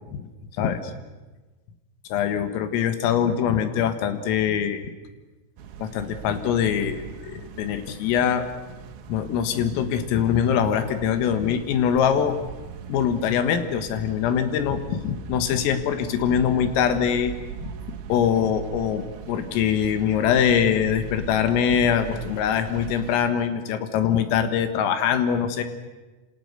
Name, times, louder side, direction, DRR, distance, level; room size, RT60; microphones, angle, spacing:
voice 1, 0.6-0.9 2.1-4.9 5.8-8.4 9.1-12.4 12.9-17.3 17.6-17.7 18.1-25.6, left 8 dB, 80° left, 9 dB, 4.2 m, -23 dB
sound 1, 5.6-23.2, right 7 dB, 80° right, 4.0 m, -40 dB
27.5 x 27.0 x 6.8 m, 1.2 s
omnidirectional pair, 5.9 m